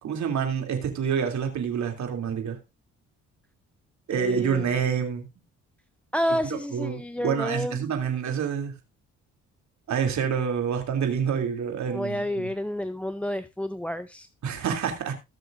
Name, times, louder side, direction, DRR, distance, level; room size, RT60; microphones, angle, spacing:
voice 1, 0.0-2.6 4.1-5.3 6.3-8.8 9.9-12.5 14.4-15.1, right 7 dB, 70° right, 3.1 m, -27 dB
voice 2, 4.1-4.6 6.1-7.7 11.9-14.3, left 1 dB, 5° left, 0.5 m, -30 dB
19.0 x 6.6 x 2.6 m
cardioid pair, 90°, 30 cm